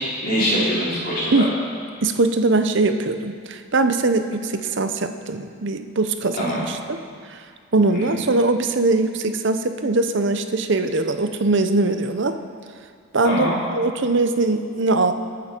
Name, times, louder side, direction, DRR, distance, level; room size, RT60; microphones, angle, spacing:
voice 1, 0.2-1.4 6.4-6.6 7.9-8.2 13.2-13.5, equal, 45° left, -8 dB, 4.5 m, -23 dB
voice 2, 2.0-6.6 6.9-7.0 7.3-7.4 7.7-12.3 13.1-15.1, right 3 dB, 55° right, 8 dB, 0.7 m, -21 dB
21.0 x 9.4 x 4.5 m, 2.2 s
head